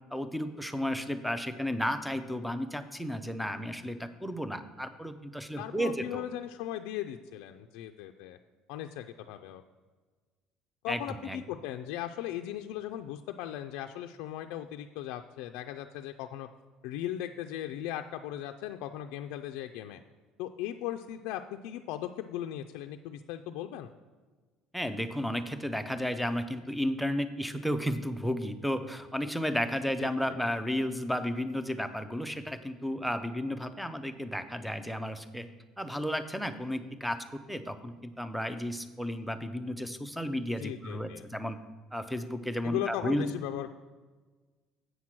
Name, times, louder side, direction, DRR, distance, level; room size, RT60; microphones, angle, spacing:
voice 1, 0.1-6.2 10.9-11.4 24.7-35.5 35.8-41.6 41.9-43.2, equal, ahead, 11 dB, 0.4 m, -33 dB
voice 2, 5.6-8.4 8.7-9.6 10.8-16.5 16.8-20.0 20.4-23.9 30.0-30.1 40.6-41.2 42.6-43.7, left 12 dB, 80° left, 5 dB, 0.3 m, -38 dB
8.0 x 6.1 x 5.9 m, 1.4 s
cardioid pair, 170°, 0 cm